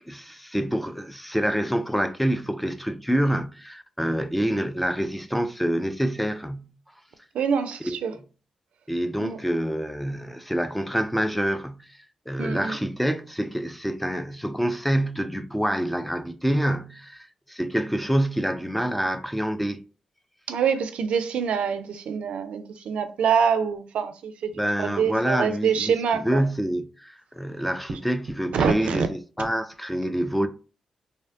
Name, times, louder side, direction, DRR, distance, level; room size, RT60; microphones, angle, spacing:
voice 1, 0.1-6.7 7.8-8.2 8.9-12.0 12.3-19.8 24.5-25.9 26.2-30.5, equal, 5° left, 0.3 m, -27 dB
voice 2, 7.3-8.1 9.2-9.4 12.4-12.8 20.5-24.5 24.8-26.4 28.5-29.1, right 6 dB, 70° right, 0.3 m, -25 dB
2.5 x 2.1 x 2.4 m
supercardioid pair, 50°, 2 cm